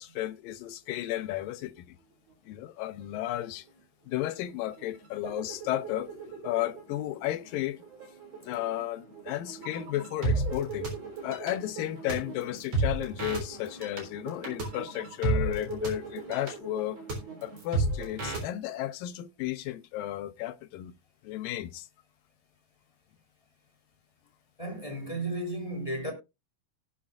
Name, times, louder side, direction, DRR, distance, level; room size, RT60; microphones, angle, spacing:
voice 1, 0.0-2.0 2.5-3.7 4.1-6.1 6.4-7.8 8.4-10.9 11.2-17.0 17.4-20.9 21.2-21.9, left 14 dB, 75° left, 2.4 m, -33 dB
sound 1, 3.0-3.1 3.3-3.8 4.2-18.4, right 2 dB, 45° right, 4.6 m, -34 dB
voice 2, 24.6-26.1, right 1 dB, 10° left, 3.1 m, -34 dB
18.0 x 7.5 x 2.5 m
omnidirectional pair, 4.2 m